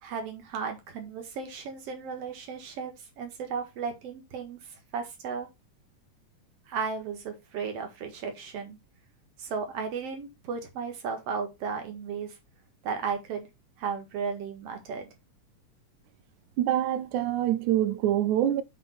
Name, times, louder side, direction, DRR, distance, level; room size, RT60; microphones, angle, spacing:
voice 1, 0.0-5.5 6.7-8.8 9.4-12.4 12.8-13.5 13.8-15.1, right 5 dB, 60° right, 2.5 m, -35 dB
voice 2, 16.6-18.6, right 12 dB, 90° right, 2.1 m, -25 dB
8.2 x 3.5 x 4.5 m
omnidirectional pair, 3.3 m